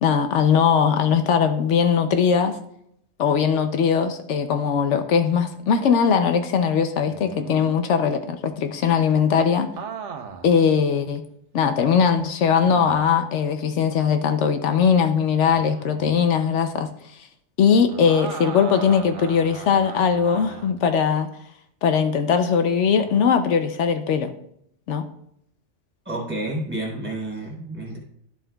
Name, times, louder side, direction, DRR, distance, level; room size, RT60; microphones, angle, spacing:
voice 1, 0.0-2.6 3.2-9.7 10.4-11.2 11.5-17.2 17.6-21.3 21.8-24.3 24.9-25.1, left 6 dB, 80° left, 8 dB, 0.9 m, -20 dB
sound 1, 7.1-7.7 9.8-10.6 11.2-11.3 12.6-13.1 15.5-16.1 17.9-20.8 23.0-23.4, right 6 dB, 80° right, 1.1 m, -37 dB
voice 2, 26.0-28.0, right 1 dB, 10° right, -3 dB, 3.4 m, -30 dB
12.5 x 7.4 x 2.3 m, 0.72 s
omnidirectional pair, 1.2 m